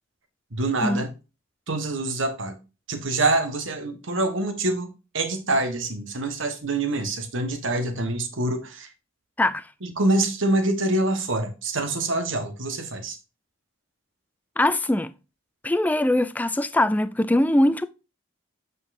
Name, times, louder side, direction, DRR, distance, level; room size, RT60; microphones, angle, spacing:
voice 1, 0.5-1.1 1.7-2.5 2.9-4.9 5.1-8.9 9.8-13.2, right 2 dB, 65° right, 1.2 m, -25 dB
voice 2, 14.6-15.1 15.6-17.9, left 1 dB, 10° left, 0.3 m, -22 dB
8.2 x 5.3 x 2.6 m
head